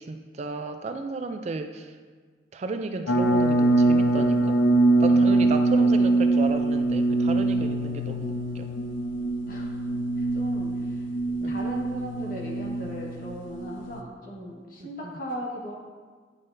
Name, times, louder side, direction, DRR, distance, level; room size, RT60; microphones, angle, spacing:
voice 1, 0.0-1.9 2.5-4.6 5.0-8.7 11.4-11.6 14.8-15.1, right 3 dB, 35° right, 7 dB, 0.3 m, -34 dB
sound 1, 3.1-14.0, right 2 dB, 90° left, 0.5 m, -23 dB
voice 2, 9.5-9.9 10.2-11.1 11.4-15.8, equal, 50° left, -3 dB, 1.4 m, -37 dB
9.8 x 5.6 x 2.6 m, 1.5 s
head